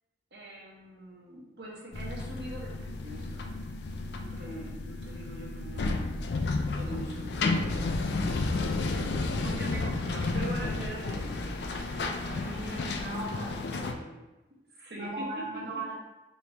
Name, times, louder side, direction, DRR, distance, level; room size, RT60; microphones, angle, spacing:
voice 1, 0.3-3.5 4.1-6.1 6.8-7.5 8.5-12.3 14.7-15.6, right 1 dB, 70° right, -4 dB, 1.1 m, -43 dB
sound 1, 1.9-13.9, left 3 dB, 75° left, 0.4 m, -32 dB
sound 2, 5.9-13.1, equal, 5° right, 0.3 m, -46 dB
voice 2, 9.3-9.7 12.2-14.2 14.9-15.9, right 2 dB, 50° right, -7 dB, 1.0 m, -39 dB
3.9 x 3.0 x 3.4 m, 1.0 s
head